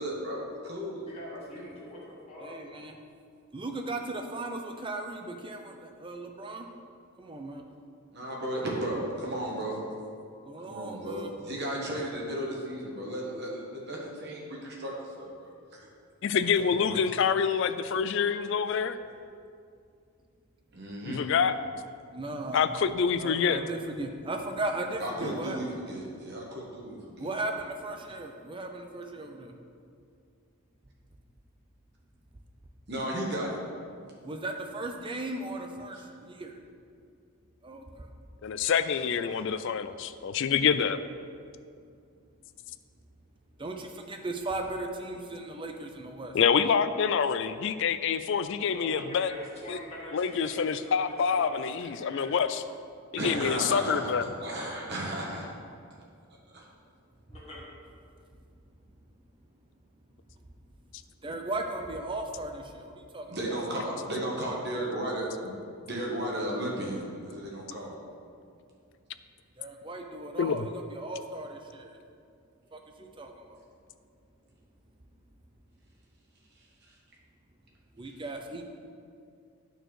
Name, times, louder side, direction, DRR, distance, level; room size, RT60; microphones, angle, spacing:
voice 1, 0.0-1.1 1.6-1.7 8.1-9.8 10.6-15.9 16.8-16.9 20.7-21.3 25.0-27.3 32.9-33.6 53.2-54.1 54.4-55.5 56.5-56.6 63.3-65.6 65.8-68.0, right 1 dB, 50° right, -2 dB, 1.6 m, -34 dB
voice 2, 1.1-2.6 48.7-52.4 57.3-57.6 63.5-63.6, equal, 25° left, -7 dB, 1.7 m, -44 dB
voice 3, 2.4-2.9 3.5-6.7 7.2-7.6 10.4-11.3 16.6-16.7 22.1-22.6 23.2-25.6 27.2-29.5 34.2-36.6 37.6-38.1 39.2-39.9 43.6-46.3 53.5-54.0 61.2-63.6 69.6-72.0 72.7-73.6 78.0-78.6, right 2 dB, 20° right, 4 dB, 0.6 m, -37 dB
voice 4, 16.2-19.0 21.0-21.6 22.5-23.6 38.4-41.0 46.3-49.3 49.7-49.8 50.1-52.6 53.1-54.3 70.4-70.7, left 6 dB, 55° left, 12 dB, 0.3 m, -26 dB
9.2 x 4.5 x 6.2 m, 2.4 s
head